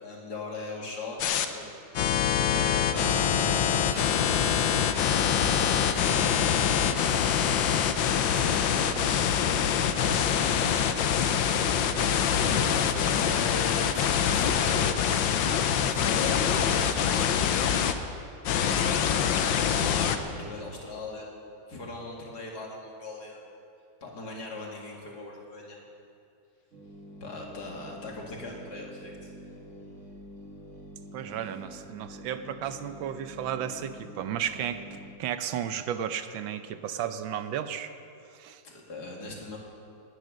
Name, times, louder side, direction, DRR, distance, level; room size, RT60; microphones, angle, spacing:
voice 1, 0.0-1.7 1.9-4.6 5.0-7.3 8.1-10.7 11.2-11.7 12.0-15.0 15.8-18.3 18.6-19.0 19.3-21.3 21.7-23.4 24.0-25.8 27.2-29.3 38.6-39.6, left 2 dB, 55° left, -1 dB, 2.8 m, -40 dB
sound 1, 1.2-1.4 1.9-17.9 18.4-20.2, left 8 dB, 75° left, 1.5 m, -25 dB
voice 2, 12.4-12.7 31.1-37.9 38.3-38.6, right 9 dB, 85° right, 11 dB, 1.5 m, -34 dB
sound 2, 26.7-35.1, right 1 dB, 40° right, 2.3 m, -47 dB
18.5 x 10.5 x 6.4 m, 2.5 s
omnidirectional pair, 2.1 m